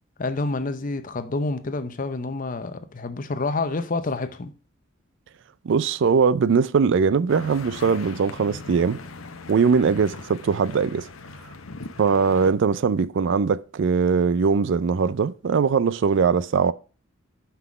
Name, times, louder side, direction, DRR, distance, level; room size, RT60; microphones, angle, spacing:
voice 1, 0.2-4.5, left 3 dB, 40° left, 0.7 m, -28 dB
voice 2, 5.6-9.0 9.5-11.1 12.0-16.7, right 5 dB, 65° right, 0.4 m, -21 dB
sound 1, 7.3-12.5, left 3 dB, 80° left, 0.8 m, -40 dB
6.0 x 5.6 x 4.8 m
head